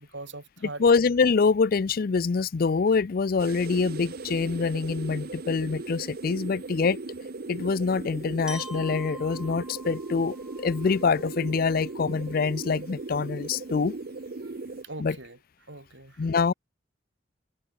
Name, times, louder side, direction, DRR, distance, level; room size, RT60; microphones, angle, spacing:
voice 1, 0.0-0.8 14.4-14.5 14.8-15.4 15.7-16.2, right 2 dB, 70° right, 4.9 m, -41 dB
voice 2, 0.8-7.0 7.5-14.0 15.0-15.2 16.2-16.5, left 5 dB, 50° left, 0.4 m, -25 dB
sound 1, 3.4-14.8, right 3 dB, 50° right, 0.7 m, -38 dB
Glockenspiel, 8.5-12.4, right 1 dB, 5° right, 7.8 m, -46 dB
head